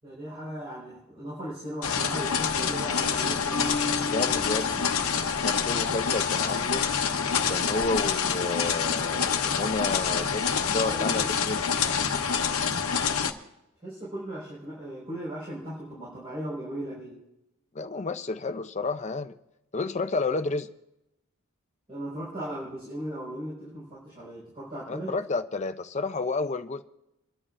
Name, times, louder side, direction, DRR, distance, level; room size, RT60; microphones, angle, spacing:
voice 1, 0.0-3.7 10.8-11.3 13.8-17.2 21.9-25.2, right 1 dB, 25° right, 4.9 m, -37 dB
sound 1, 1.8-13.3, left 6 dB, 75° left, 0.9 m, -27 dB
Marimba xylophone, 3.5-5.5, left 3 dB, 10° left, 1.8 m, -35 dB
voice 2, 4.1-6.9 7.5-11.6 17.7-19.3 19.7-20.7 24.9-26.8, left 3 dB, 30° left, 0.5 m, -31 dB
30.0 x 11.0 x 2.5 m
head